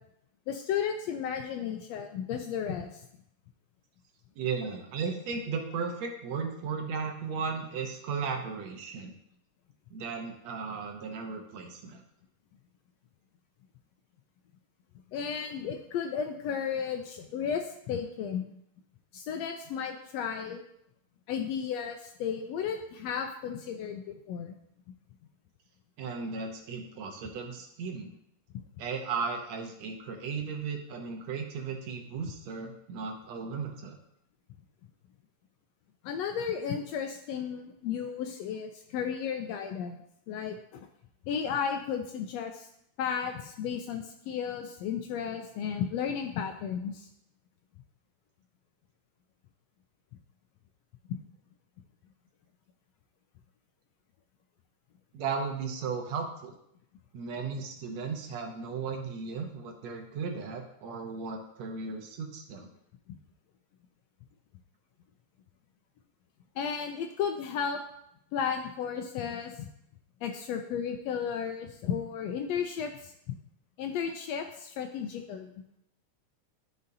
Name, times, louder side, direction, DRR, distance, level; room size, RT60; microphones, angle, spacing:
voice 1, 0.5-3.1 15.1-18.5 19.1-20.6 21.3-24.5 36.0-40.0 40.3-40.9 41.3-42.7 43.0-47.1 51.1-51.2 66.6-67.8 68.3-69.7 70.2-73.3 73.8-75.5, left 7 dB, 80° left, 5 dB, 1.5 m, -34 dB
voice 2, 4.4-9.1 9.9-12.0 26.0-28.1 28.8-34.0 55.1-56.5 57.1-62.7, right 5 dB, 70° right, 3 dB, 2.0 m, -35 dB
12.5 x 5.3 x 2.7 m, 0.75 s
omnidirectional pair, 3.4 m